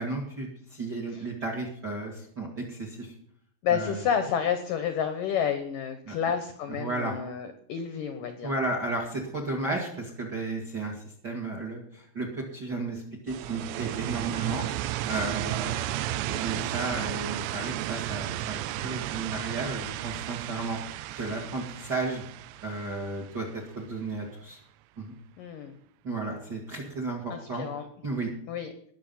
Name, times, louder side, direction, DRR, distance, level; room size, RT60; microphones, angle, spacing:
voice 1, 0.0-3.1 3.7-4.0 6.1-6.2 6.7-7.2 8.4-22.2 22.6-24.6 25.0-25.1 26.0-27.6 28.0-28.3, right 2 dB, 35° right, 1 dB, 1.7 m, -34 dB
voice 2, 3.6-8.5 25.4-25.7 27.3-27.8 28.5-28.7, left 8 dB, 75° left, 8 dB, 2.0 m, -30 dB
sound 1, 13.3-24.0, right 14 dB, 80° right, 2.8 m, -33 dB
20.0 x 7.5 x 5.6 m, 0.64 s
omnidirectional pair, 5.2 m